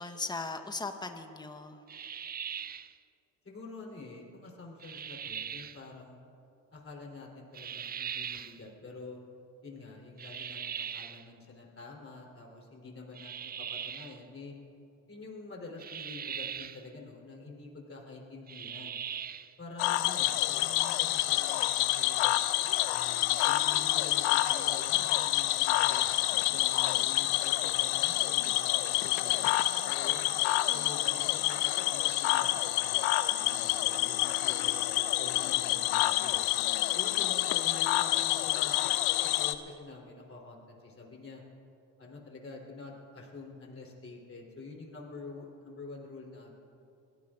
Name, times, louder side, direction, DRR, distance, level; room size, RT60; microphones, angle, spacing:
voice 1, 0.0-1.8 29.9-30.4, left 3 dB, 10° left, 7 dB, 1.1 m, -39 dB
sound 1, 1.9-2.9 4.8-5.8 7.5-8.6 10.2-11.3 13.1-14.2 15.8-16.8 18.5-19.5, right 8 dB, 25° right, 0.4 m, -40 dB
voice 2, 3.4-6.2 6.7-9.2 9.6-14.6 15.1-19.0 19.6-22.4 22.9-26.1 26.5-30.2 30.7-33.0 33.4-36.4 36.9-38.8 39.2-41.4 42.0-46.5, left 3 dB, 30° left, -1 dB, 3.7 m, -47 dB
Cricket / Frog, 19.8-39.5, left 15 dB, 75° left, 0.7 m, -28 dB
23.0 x 16.5 x 2.5 m, 2.7 s
hypercardioid pair, 60°, 44 cm